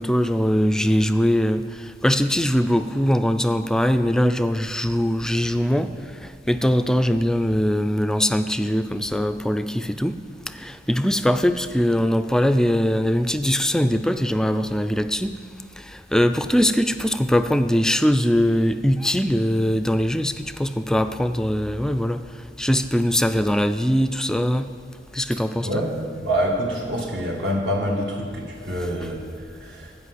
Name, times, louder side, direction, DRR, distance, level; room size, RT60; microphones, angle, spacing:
voice 1, 0.0-10.2 10.5-15.3 15.8-22.2 22.6-24.7 25.1-25.8, equal, 5° left, 10 dB, 0.3 m, -21 dB
voice 2, 25.6-29.2 29.5-29.9, equal, 70° right, -1 dB, 2.0 m, -26 dB
13.0 x 5.2 x 7.9 m, 2.2 s
head